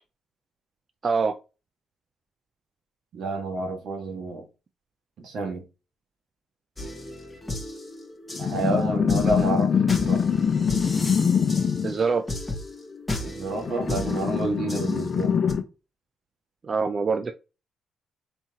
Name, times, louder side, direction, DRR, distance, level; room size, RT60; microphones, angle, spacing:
voice 1, 1.0-1.4 11.8-12.2 16.6-17.3, right 5 dB, 35° right, 0.4 m, -24 dB
voice 2, 3.1-4.4 5.2-5.6 8.4-10.2 13.2-15.4, right 2 dB, 65° right, 1.6 m, -29 dB
sound 1, 6.8-15.5, left 2 dB, 10° left, 1.6 m, -35 dB
sound 2, 8.4-11.9 13.5-15.6, left 6 dB, 50° left, 0.7 m, -24 dB
4.4 x 3.6 x 2.8 m
cardioid pair, 90°, 0 cm